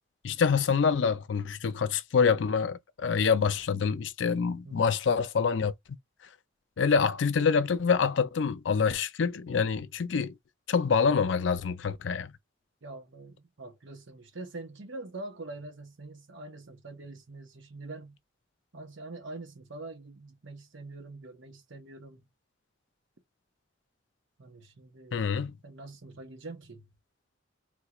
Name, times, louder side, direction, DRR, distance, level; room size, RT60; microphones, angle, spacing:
voice 1, 0.2-5.7 6.8-10.3 10.7-12.3 25.1-25.5, left 6 dB, 75° left, 0.5 m, -26 dB
voice 2, 12.8-18.2 18.7-22.3 24.4-25.2 25.6-26.8, right 2 dB, 80° right, 1.0 m, -44 dB
3.6 x 2.4 x 2.9 m
head